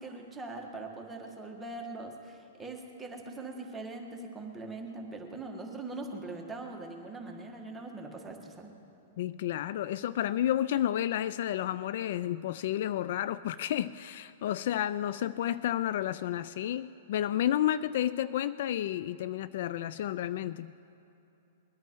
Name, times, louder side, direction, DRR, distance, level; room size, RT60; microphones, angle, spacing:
voice 1, 0.0-8.7, right 2 dB, 10° right, 1 dB, 1.7 m, -42 dB
voice 2, 9.2-20.7, left 11 dB, 60° left, 16 dB, 0.3 m, -31 dB
21.5 x 10.5 x 4.7 m, 3.0 s
hypercardioid pair, 140°, 0 cm